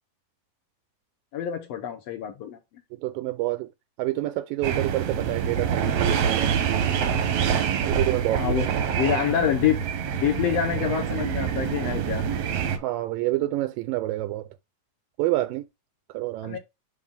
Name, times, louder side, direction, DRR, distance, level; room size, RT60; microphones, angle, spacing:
voice 1, 1.3-2.6 8.4-8.7 8.9-9.8 10.1-12.2 16.4-16.6, left 9 dB, 70° left, 1.5 m, -26 dB
voice 2, 2.9-3.7 4.0-6.8 7.8-8.6 12.7-14.5 15.2-15.6 16.1-16.6, right 16 dB, 85° right, 2.2 m, -28 dB
sound 1, 4.6-12.8, right 7 dB, 65° right, 1.7 m, -26 dB
11.0 x 3.8 x 2.3 m
omnidirectional pair, 4.1 m